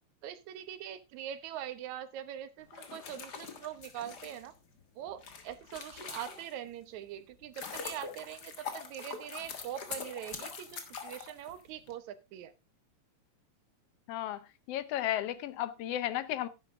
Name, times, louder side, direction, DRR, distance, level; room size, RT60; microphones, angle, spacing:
voice 1, 0.2-4.5 5.0-12.5, right 10 dB, 80° right, 2.3 m, -43 dB
sound 1, 2.6-6.7 7.2-11.9, left 5 dB, 40° left, 1.7 m, -44 dB
voice 2, 14.1-14.4 14.7-16.5, left 12 dB, 70° left, 1.6 m, -33 dB
10.5 x 9.9 x 3.6 m
omnidirectional pair, 3.3 m